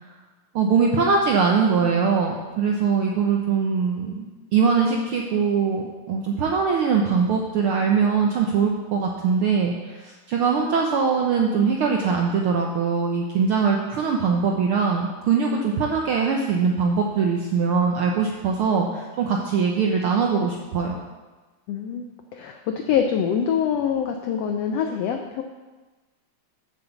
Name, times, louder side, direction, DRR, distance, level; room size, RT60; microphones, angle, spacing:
voice 1, 0.5-4.3 4.5-21.0, right 5 dB, 85° right, 0 dB, 1.1 m, -22 dB
voice 2, 21.7-25.4, left 8 dB, 85° left, 5 dB, 1.4 m, -25 dB
7.9 x 7.3 x 7.2 m, 1.2 s
omnidirectional pair, 3.6 m